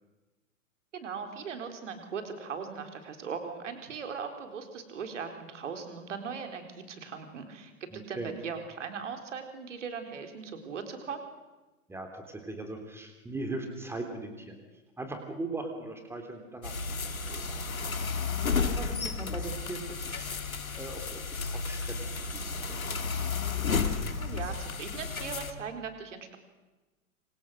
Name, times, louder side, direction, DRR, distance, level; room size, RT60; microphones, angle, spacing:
voice 1, 0.9-11.2 24.2-26.4, right 6 dB, 60° right, 6 dB, 4.2 m, -39 dB
voice 2, 7.9-8.3 11.9-14.6 15.0-16.7 17.0-17.1 17.5-18.0 18.6-20.3 20.6-22.7, right 2 dB, 5° right, 5 dB, 3.4 m, -39 dB
sound 1, 16.6-25.5, left 5 dB, 75° left, 2.3 m, -32 dB
27.5 x 26.5 x 6.5 m, 1.2 s
figure-of-eight pair, 110°, 42 cm